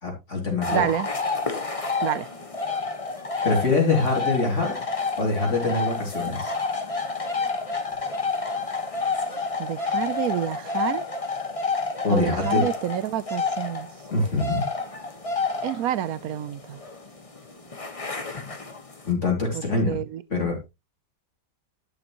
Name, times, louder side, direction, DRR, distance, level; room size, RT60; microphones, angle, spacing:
voice 1, 0.0-0.9 3.4-4.8 5.2-6.5 12.0-12.6 14.1-14.6 19.1-20.0 20.3-20.6, left 3 dB, 40° left, 2.7 m, -24 dB
sound 1, 0.6-19.1, left 4 dB, 20° left, 1.1 m, -29 dB
voice 2, 0.7-1.1 2.0-2.3 9.6-11.0 12.1-13.9 15.6-16.8 19.5-20.2, right 11 dB, 75° right, 0.8 m, -28 dB
11.0 x 6.9 x 2.9 m
omnidirectional pair, 2.1 m